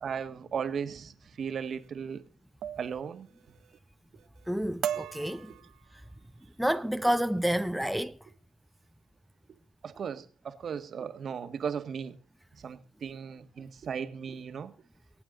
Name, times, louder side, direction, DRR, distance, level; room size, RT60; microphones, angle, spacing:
voice 1, 0.0-2.2 2.8-3.3 9.8-12.1 12.6-14.7, right 7 dB, 55° right, 1.5 m, -36 dB
sound 1, 1.6-1.9 2.6-3.0 3.3-3.8 4.2-4.5 4.8-6.2 6.8-7.0 7.4-7.7, right 10 dB, 75° right, 0.9 m, -38 dB
voice 2, 4.5-5.5 6.6-8.2, equal, ahead, 0.6 m, -29 dB
24.0 x 8.8 x 3.8 m
cardioid pair, 90°, 0 cm